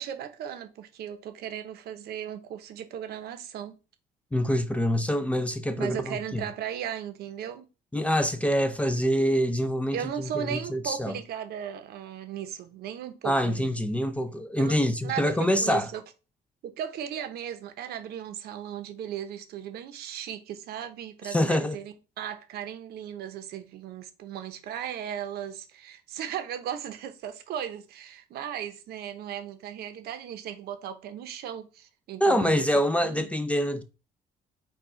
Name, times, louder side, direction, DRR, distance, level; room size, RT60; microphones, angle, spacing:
voice 1, 0.0-3.8 5.8-7.7 9.9-13.8 14.6-14.8 15.0-16.0 16.6-32.6 33.0-33.3, right 9 dB, 70° right, 0.8 m, -36 dB
voice 2, 4.3-6.4 7.9-11.1 13.2-15.9 21.3-21.8 32.2-33.8, equal, 10° left, 0.4 m, -25 dB
4.6 x 2.4 x 4.3 m
cardioid pair, 110°, 17 cm